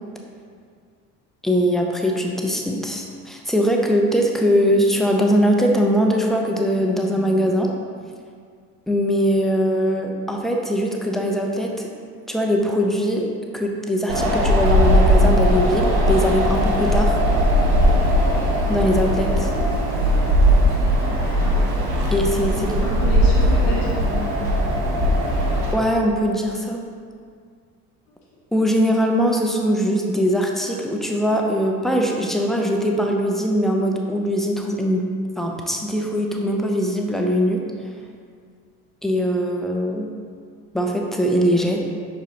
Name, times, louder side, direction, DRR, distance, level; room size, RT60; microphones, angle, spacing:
voice 1, 1.4-7.7 8.9-11.9 12.3-17.2 18.7-19.5 22.1-22.8 25.7-26.8 28.5-37.7 39.0-40.1 40.7-41.8, equal, ahead, 1 dB, 0.6 m, -21 dB
Wind, 14.1-25.7, equal, 60° right, 1.3 m, -18 dB
voice 2, 21.2-21.8 22.6-24.4, left 2 dB, 60° left, -7 dB, 1.2 m, -31 dB
6.8 x 6.0 x 2.9 m, 2.1 s
figure-of-eight pair, 55°, 48 cm